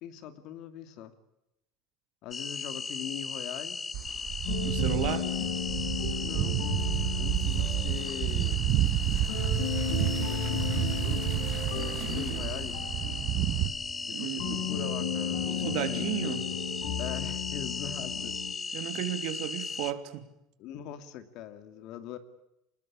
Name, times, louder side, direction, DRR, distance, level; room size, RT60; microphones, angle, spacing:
voice 1, 0.0-1.2 2.2-3.8 6.2-6.8 7.2-8.6 10.2-11.3 12.1-12.8 14.1-16.4 17.0-18.4 18.9-19.0 20.6-22.2, left 10 dB, 50° left, 11 dB, 2.5 m, -41 dB
sound 1, 2.3-19.9, left 4 dB, 15° left, 1.2 m, -37 dB
sound 2, 3.9-13.7, right 14 dB, 45° right, 1.3 m, -30 dB
sound 3, 4.4-18.5, left 7 dB, 80° left, 6.7 m, -35 dB
voice 2, 4.6-5.3 12.0-12.4 14.1-14.7 15.5-16.4 18.7-20.2, right 13 dB, 60° right, 10 dB, 2.9 m, -34 dB
26.0 x 21.0 x 8.5 m, 0.86 s
cardioid pair, 160°, 0 cm